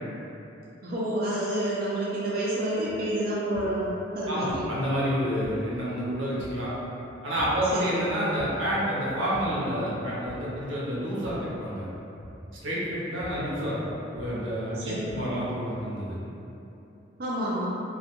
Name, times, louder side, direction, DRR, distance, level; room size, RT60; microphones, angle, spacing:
voice 1, 0.8-4.6 7.7-8.0 14.7-15.1 17.2-17.7, right 1 dB, 50° right, -8 dB, 0.4 m, -29 dB
sound 1, 2.8-2.9 3.5-4.0 4.5-4.9 5.4-5.8 6.4-6.8 7.4-7.8 8.3-8.8 9.3-9.7 10.2-10.6 11.2-11.6 12.2-12.6 13.2-13.6 14.1-14.6 15.1-15.5, left 1 dB, 40° left, 0.3 m, -45 dB
voice 2, 4.3-6.7 7.2-11.9 12.6-13.8 14.1-16.2, equal, 75° right, -8 dB, 0.7 m, -29 dB
2.3 x 2.2 x 2.8 m, 2.9 s
head